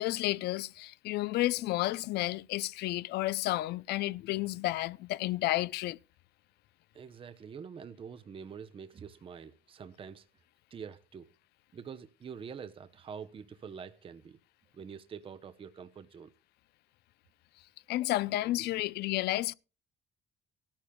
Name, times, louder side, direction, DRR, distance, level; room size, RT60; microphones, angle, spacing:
voice 1, 0.0-6.0 17.9-19.5, left 16 dB, 75° left, 0.5 m, -31 dB
voice 2, 6.9-10.3 10.7-11.3 11.7-14.4 14.7-16.3, right 6 dB, 30° right, 0.7 m, -46 dB
17.0 x 13.0 x 2.2 m
cardioid pair, 110°, 17 cm